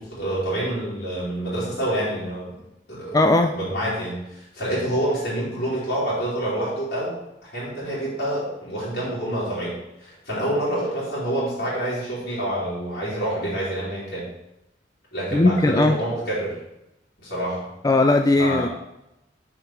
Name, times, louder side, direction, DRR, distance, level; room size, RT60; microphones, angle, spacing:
voice 1, 0.0-2.5 2.9-3.2 3.5-14.3 15.1-16.6 17.2-17.7 18.4-18.7, right 1 dB, 60° left, -10 dB, 3.0 m, -27 dB
voice 2, 3.1-3.5 15.3-16.0 17.8-18.7, left 2 dB, 20° left, 6 dB, 0.3 m, -18 dB
6.5 x 4.8 x 5.8 m, 0.88 s
head